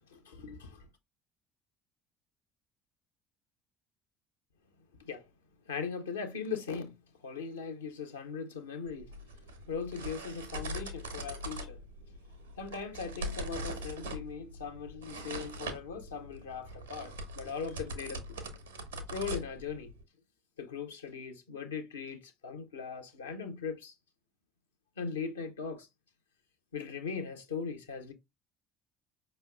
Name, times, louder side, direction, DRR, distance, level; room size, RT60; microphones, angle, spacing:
voice 1, 0.1-0.9 5.0-5.3 5.7-7.0 7.2-9.1 9.7-11.8 12.6-18.4 19.1-19.9 20.6-23.9 25.0-25.9 26.7-28.1, left 5 dB, 75° left, 0.8 m, -39 dB
sound 1, 8.9-20.0, right 1 dB, 80° right, 0.8 m, -42 dB
5.1 x 3.2 x 2.3 m
figure-of-eight pair, 60°, 0 cm